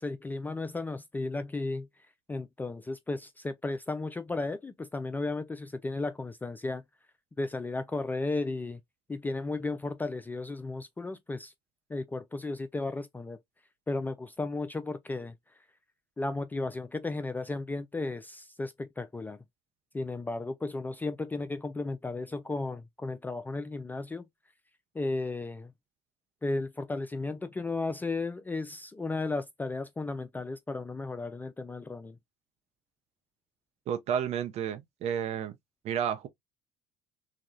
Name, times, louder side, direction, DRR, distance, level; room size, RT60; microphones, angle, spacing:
voice 1, 0.0-1.9 2.3-6.8 7.4-8.8 9.1-11.5 11.9-13.4 13.9-15.3 16.2-19.4 19.9-24.2 24.9-25.7 26.4-32.2, left 3 dB, 10° left, 0.3 m, -34 dB
voice 2, 33.9-35.5 35.8-36.3, right 8 dB, 45° right, 0.7 m, -31 dB
2.9 x 2.2 x 2.5 m
figure-of-eight pair, 65°, 14 cm